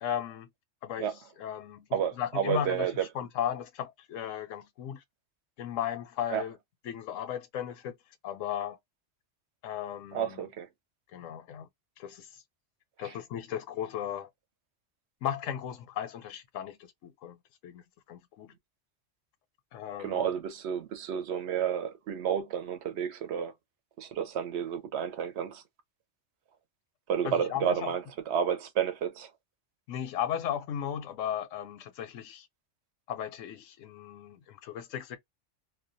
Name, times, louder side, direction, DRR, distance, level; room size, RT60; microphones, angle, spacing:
voice 1, 0.0-0.5 0.8-1.1 1.4-5.0 5.6-6.6 6.8-7.9 8.2-8.8 9.6-10.5 11.1-11.7 12.0-12.4 13.0-14.3 15.2-17.8 18.1-18.5 19.7-20.3 27.2-27.9 29.9-32.5 33.1-35.2, left 9 dB, 90° left, 1.0 m, -36 dB
voice 2, 1.9-3.0 6.3-6.4 10.1-10.7 13.0-13.1 20.0-23.5 24.0-25.6 27.1-29.3, right 8 dB, 70° right, 0.8 m, -31 dB
2.4 x 2.1 x 2.5 m
omnidirectional pair, 1.3 m